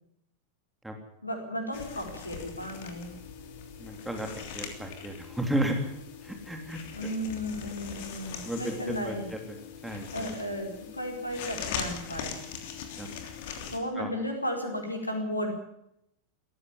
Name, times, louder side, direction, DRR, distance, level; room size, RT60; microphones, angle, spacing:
voice 1, 1.2-3.1 6.9-9.3 10.1-12.4 13.7-15.5, equal, 85° left, 3 dB, 4.7 m, -34 dB
sound 1, 1.7-13.8, left 7 dB, 50° left, 3.1 m, -41 dB
voice 2, 3.8-4.3 4.5-5.7 6.2-6.8 8.4-9.4 9.8-10.3 13.0-13.1 14.0-14.1, right 1 dB, 5° right, 3 dB, 3.2 m, -33 dB
18.0 x 14.5 x 10.0 m, 0.78 s
figure-of-eight pair, 90°, 0 cm